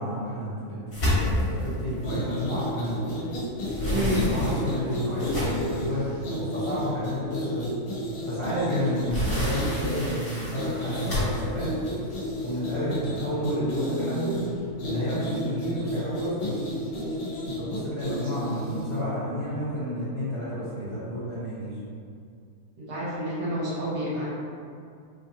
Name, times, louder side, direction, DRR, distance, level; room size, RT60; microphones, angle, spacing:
voice 1, 0.0-3.0 3.8-7.7 8.2-11.7 12.4-14.4 14.8-16.7 17.6-21.8, equal, 20° left, -13 dB, 1.0 m, -30 dB
sound 1, 0.9-3.1 3.4-5.8 6.5-6.6 7.0-7.1 8.5-12.8, left 1 dB, 40° left, 1.4 m, -30 dB
sound 2, 2.0-19.0, left 1 dB, 75° left, 1.2 m, -33 dB
voice 2, 3.9-4.3 22.8-24.2, equal, 85° right, -9 dB, 1.6 m, -29 dB
4.0 x 2.4 x 2.7 m, 2.3 s
omnidirectional pair, 1.6 m